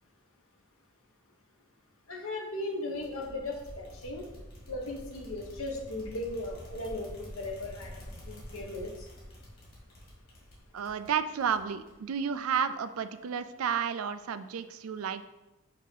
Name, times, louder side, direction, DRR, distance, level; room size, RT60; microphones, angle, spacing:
voice 1, 2.1-4.3 4.7-7.1 7.3-9.1, left 2 dB, 75° left, 1 dB, 1.1 m, -37 dB
sound 1, 2.9-12.2, equal, 45° left, 2.1 m, -48 dB
voice 2, 10.7-15.3, right 7 dB, 85° right, 12 dB, 0.4 m, -32 dB
6.5 x 2.8 x 5.4 m, 1.0 s
head